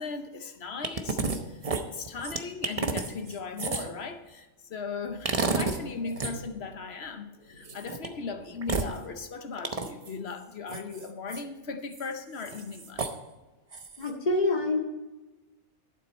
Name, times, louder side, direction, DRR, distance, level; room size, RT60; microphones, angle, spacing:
voice 1, 0.0-1.6 1.9-13.1, left 4 dB, 55° left, 8 dB, 1.0 m, -38 dB
sound 1, 0.8-1.4 1.6-4.0 5.2-5.8 6.1-6.3 7.6-8.1 8.6-8.9 9.6-10.1 10.7-11.4 11.9-12.1 12.4-13.1 13.7-14.1, right 4 dB, 35° right, 0.8 m, -30 dB
voice 2, 14.0-14.8, left 2 dB, 35° left, 0 dB, 1.8 m, -26 dB
12.0 x 7.4 x 4.2 m, 1.1 s
omnidirectional pair, 1.4 m